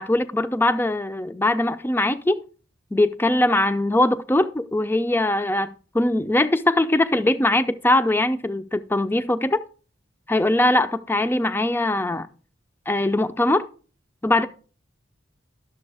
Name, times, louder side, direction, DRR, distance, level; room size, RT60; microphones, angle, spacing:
voice 1, 0.0-2.4 2.9-9.6 10.3-12.3 12.9-13.7 14.2-14.5, left 1 dB, 10° left, 0.4 m, -21 dB
11.5 x 7.0 x 3.4 m
head